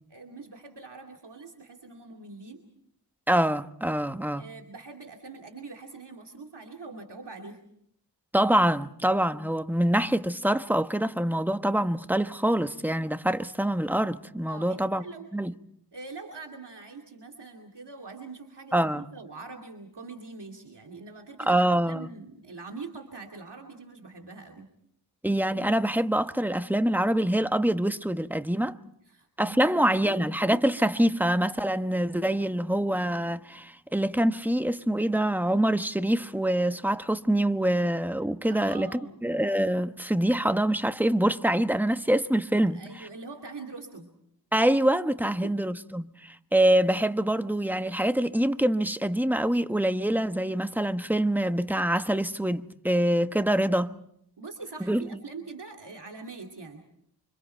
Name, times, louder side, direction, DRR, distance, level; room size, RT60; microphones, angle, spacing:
voice 1, 0.1-2.6 4.4-7.6 14.5-15.3 15.9-24.7 29.1-30.3 38.5-39.3 42.7-44.1 45.4-45.5 53.7-53.8 54.4-56.9, right 3 dB, 70° right, 2.6 m, -43 dB
voice 2, 3.3-4.4 8.3-15.0 15.3-15.5 18.7-19.0 21.4-22.1 25.2-28.8 29.4-42.8 44.5-54.0 54.9-55.2, right 1 dB, 5° right, 1.1 m, -25 dB
29.5 x 25.5 x 4.5 m
cardioid pair, 40°, 43 cm